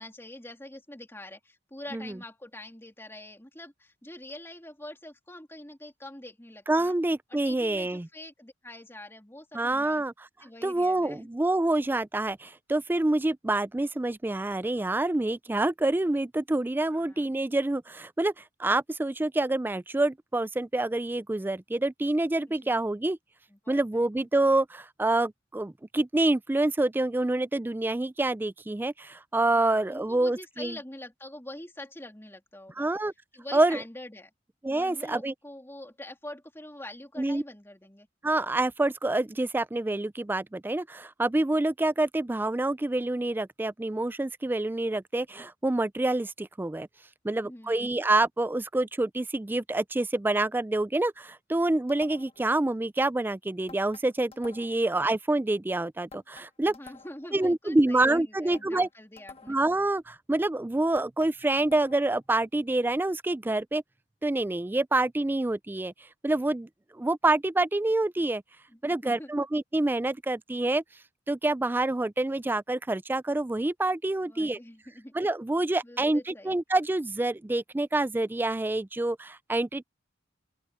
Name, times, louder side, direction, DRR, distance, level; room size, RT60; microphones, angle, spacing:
voice 1, 0.0-6.9 7.3-10.0 10.4-11.3 16.8-17.3 22.5-22.8 23.5-24.3 29.5-32.9 33.3-34.3 34.7-38.1 47.4-47.9 54.8-54.9 56.6-59.6 68.7-69.5 74.2-75.1 75.8-76.6, left 1 dB, 15° left, 3.1 m, -45 dB
voice 2, 6.7-8.1 9.5-10.1 10.6-23.2 23.7-30.8 32.8-33.1 33.5-33.8 34.6-35.3 37.2-37.4 38.2-46.9 47.2-56.7 57.3-58.9 59.5-63.8 64.2-65.9 66.2-66.7 66.9-68.4 68.8-70.8 71.3-74.6 75.1-79.8, right 2 dB, 10° right, 0.3 m, -27 dB
sound 1, 51.9-52.5 53.7-54.9 56.1-57.3 58.5-59.8 61.0-62.2, left 4 dB, 30° left, 1.5 m, -51 dB
open air
head